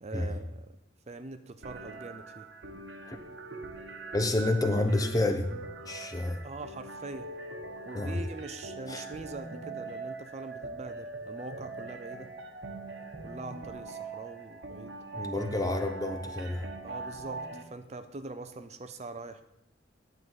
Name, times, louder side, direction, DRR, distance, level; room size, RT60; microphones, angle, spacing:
voice 1, 0.0-0.7 1.1-2.5 6.4-7.3 7.9-12.3 13.2-15.0 16.8-19.4, right 2 dB, 35° right, 9 dB, 0.5 m, -43 dB
sound 1, 1.6-17.6, right 3 dB, 75° right, 1.2 m, -42 dB
voice 2, 4.1-5.5 5.9-6.4 7.9-8.2 8.9-9.0 15.2-16.7, left 2 dB, 20° left, 5 dB, 0.8 m, -29 dB
11.0 x 4.0 x 7.7 m, 0.80 s
head